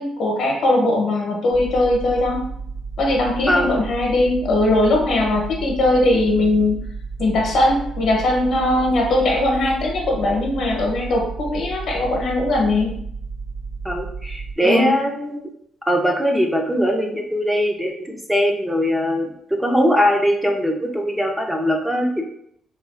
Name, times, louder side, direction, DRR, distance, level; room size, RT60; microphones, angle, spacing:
voice 1, 0.0-2.4 3.0-6.8 7.2-13.0 14.6-15.0, left 2 dB, 70° left, 0 dB, 0.8 m, -20 dB
sound 1, 1.5-14.5, right 4 dB, 50° right, 1.2 m, -32 dB
voice 2, 13.8-15.5 15.9-22.2, equal, 10° right, 1 dB, 0.5 m, -21 dB
3.2 x 2.3 x 2.3 m, 0.69 s
cardioid pair, 90°, 0 cm